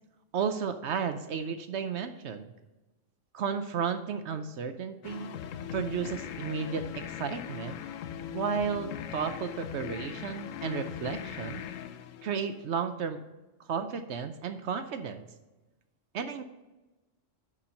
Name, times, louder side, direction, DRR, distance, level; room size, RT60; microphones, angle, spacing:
voice 1, 0.3-2.5 3.3-5.4 5.7-7.8 8.3-11.6 12.2-13.2 13.6-15.3 16.1-16.4, right 6 dB, 65° right, 9 dB, 0.9 m, -33 dB
sound 1, 5.0-12.8, left 9 dB, 90° left, 1.0 m, -40 dB
10.0 x 4.4 x 5.1 m, 1.1 s
omnidirectional pair, 1.3 m